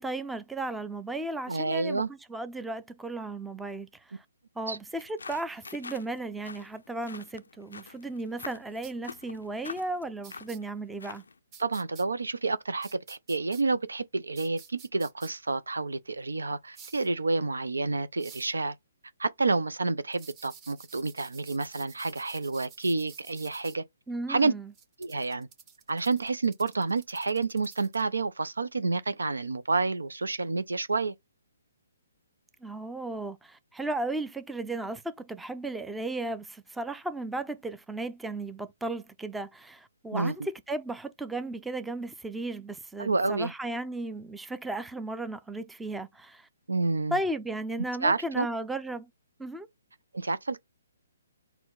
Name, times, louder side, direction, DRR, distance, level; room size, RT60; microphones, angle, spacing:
voice 1, 0.0-4.2 4.6-11.2 24.1-24.7 32.6-46.5 47.1-49.1 49.4-49.7, right 2 dB, 5° right, 0.4 m, -35 dB
voice 2, 1.5-2.1 4.7-4.8 11.6-18.8 19.2-23.8 24.3-24.5 25.0-25.5 25.9-31.1 40.1-40.4 43.0-43.5 46.7-47.2 48.0-48.5 50.1-50.6, right 3 dB, 85° right, 0.5 m, -29 dB
sound 1, 4.9-11.4, left 4 dB, 80° left, 0.4 m, -46 dB
sound 2, 8.8-8.9 10.2-10.6 11.5-12.0 12.8-13.6 14.4-15.3 16.7-17.1 18.2-18.5 20.1-23.8 24.7-28.0, right 6 dB, 25° right, 1.0 m, -51 dB
4.3 x 2.1 x 3.8 m
hypercardioid pair, 140°, 0 cm